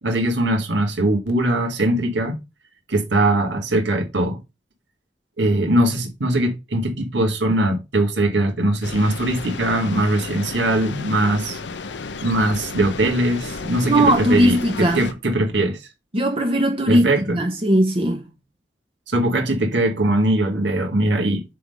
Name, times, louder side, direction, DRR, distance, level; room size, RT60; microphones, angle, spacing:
voice 1, 0.0-2.4 2.9-4.4 5.4-11.6 12.2-15.9 16.9-17.4 19.1-21.4, right 1 dB, 80° right, 1.9 m, -21 dB
sound 1, 8.8-15.1, left 4 dB, 80° left, 0.7 m, -33 dB
voice 2, 13.8-15.0 16.1-17.1 17.3-18.3, right 1 dB, 30° right, 0.9 m, -18 dB
6.6 x 3.8 x 5.3 m
head